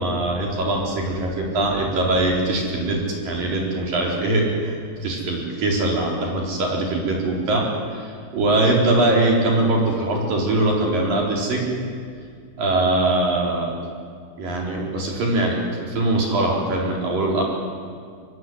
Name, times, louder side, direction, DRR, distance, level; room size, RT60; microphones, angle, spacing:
voice 1, 0.0-4.8 5.0-7.6 7.9-11.7 12.6-13.8 14.4-17.4, right 2 dB, 50° right, -1 dB, 6.0 m, -22 dB
25.5 x 22.0 x 9.6 m, 2.1 s
omnidirectional pair, 5.3 m